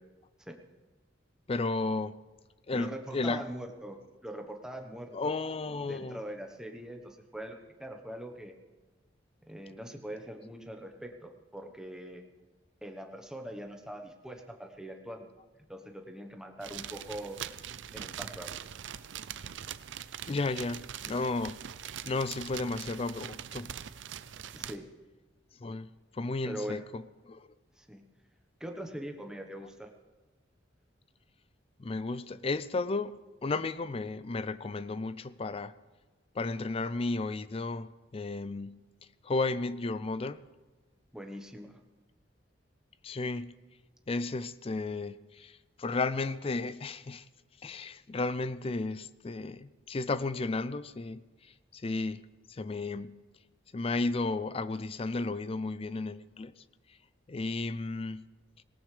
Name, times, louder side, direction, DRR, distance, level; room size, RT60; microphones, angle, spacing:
voice 1, 1.5-2.2 2.7-3.5 5.1-6.2 20.3-21.6 22.1-23.7 25.6-27.5 31.8-35.7 36.4-38.9 39.2-40.4 43.0-43.5 44.1-47.2 47.6-51.2 51.7-52.2 52.5-53.2 53.7-56.5 57.3-58.2, left 3 dB, 30° left, 0.4 m, -33 dB
voice 2, 2.7-5.3 5.8-8.5 9.4-12.2 12.8-15.3 15.7-17.4 17.9-18.5 24.5-24.9 26.4-26.8 27.8-28.0 28.6-29.9 41.1-41.7, right 1 dB, 5° right, 1.1 m, -42 dB
sound 1, 16.6-24.8, right 9 dB, 80° right, 0.5 m, -42 dB
19.0 x 18.0 x 3.4 m
head